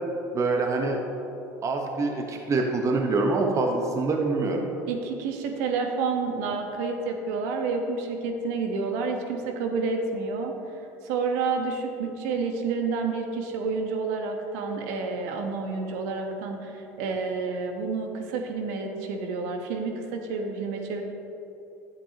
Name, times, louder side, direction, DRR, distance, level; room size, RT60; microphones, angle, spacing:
voice 1, 0.3-1.0 1.6-4.7, right 3 dB, 35° right, 2 dB, 1.0 m, -25 dB
voice 2, 4.9-10.6 11.0-21.0, right 4 dB, 75° right, 3 dB, 1.1 m, -29 dB
11.5 x 8.2 x 2.9 m, 3.0 s
hypercardioid pair, 75°, 9 cm